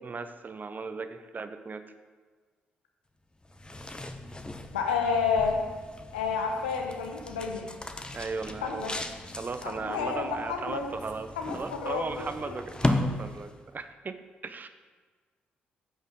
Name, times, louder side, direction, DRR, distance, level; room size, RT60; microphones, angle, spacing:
voice 1, 0.0-1.8 8.1-9.0 9.4-11.3 11.5-14.7, right 4 dB, 35° right, 9 dB, 0.8 m, -37 dB
sound 1, 3.4-13.8, left 2 dB, 20° left, 0.8 m, -36 dB
voice 2, 4.7-5.6 6.1-7.8 8.6-9.0 9.6-10.9 11.4-12.5, left 5 dB, 85° left, 3 dB, 0.9 m, -30 dB
15.0 x 5.4 x 3.8 m, 1.4 s
figure-of-eight pair, 40°, 5 cm